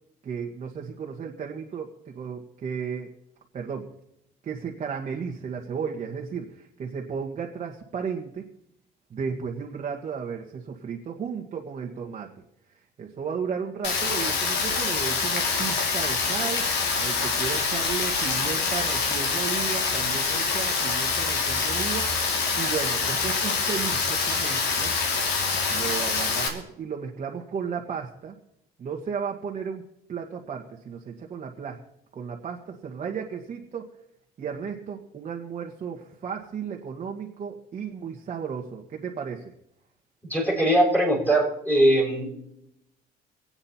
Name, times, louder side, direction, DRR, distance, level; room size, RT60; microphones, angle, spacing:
voice 1, 0.2-3.1 3.5-3.9 4.4-8.4 9.1-12.3 12.7-24.9 25.7-28.4 28.8-29.8 30.1-31.8 32.1-33.9 34.4-39.5, right 6 dB, 40° right, 1 dB, 1.5 m, -34 dB
Rain, 13.8-26.5, left 4 dB, 85° left, 2.7 m, -25 dB
voice 2, 40.2-42.3, right 1 dB, 10° left, -3 dB, 6.1 m, -21 dB
25.0 x 8.8 x 4.3 m, 0.81 s
cardioid pair, 110°, 17 cm